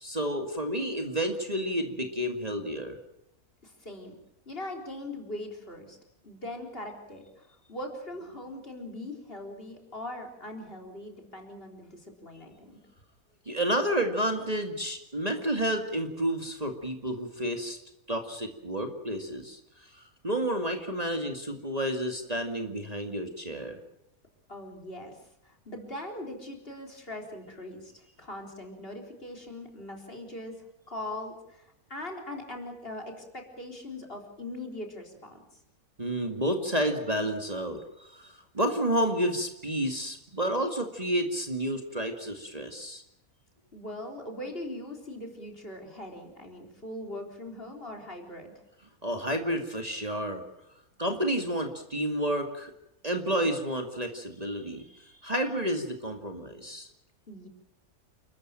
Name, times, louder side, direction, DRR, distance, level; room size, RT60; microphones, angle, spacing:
voice 1, 0.0-3.0 13.5-17.8 18.1-23.8 36.0-43.0 49.0-50.4 51.0-52.7 53.0-56.9, right 1 dB, 25° right, 4 dB, 2.2 m, -30 dB
voice 2, 3.6-4.1 4.5-6.0 6.2-12.8 24.5-25.2 25.4-30.6 30.9-35.6 43.7-48.5 57.3-57.5, left 1 dB, 40° left, 2 dB, 4.2 m, -41 dB
29.0 x 14.0 x 9.1 m, 0.83 s
omnidirectional pair, 1.5 m